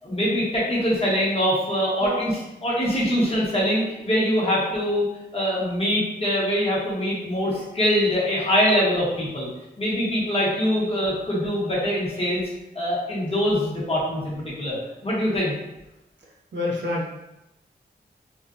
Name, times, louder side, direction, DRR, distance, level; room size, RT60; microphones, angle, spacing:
voice 1, 0.0-5.0 5.3-9.5 9.8-12.4 12.7-14.8 15.0-15.5, equal, 35° left, -7 dB, 1.1 m, -23 dB
voice 2, 16.5-17.1, left 2 dB, 80° right, -3 dB, 0.5 m, -27 dB
2.4 x 2.1 x 2.4 m, 0.93 s
cardioid pair, 60°, 18 cm